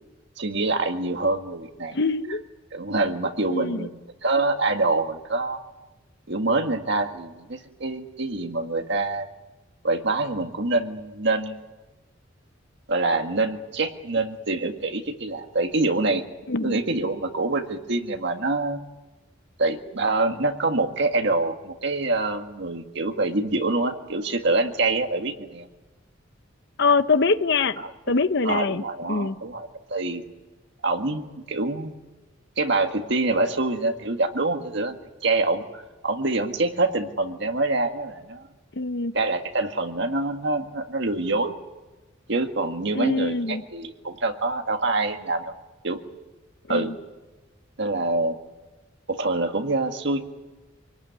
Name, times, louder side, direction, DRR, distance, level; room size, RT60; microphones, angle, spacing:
voice 1, 0.4-2.0 2.7-5.6 6.3-9.3 9.8-11.6 12.9-16.2 16.6-18.8 19.6-25.7 27.8-27.9 28.4-30.2 30.8-31.9 32.6-35.0 35.2-38.4 39.1-41.5 42.3-45.5 45.8-46.0 46.7-46.9 47.8-48.4 49.1-50.2, right 2 dB, 60° right, 5 dB, 1.9 m, -25 dB
voice 2, 1.9-2.4 3.5-3.9 16.5-16.8 26.8-28.8 29.1-29.4 38.8-39.1 42.9-43.6 46.7-47.0, left 4 dB, 60° left, 12 dB, 0.8 m, -24 dB
25.5 x 18.5 x 9.5 m, 1.1 s
head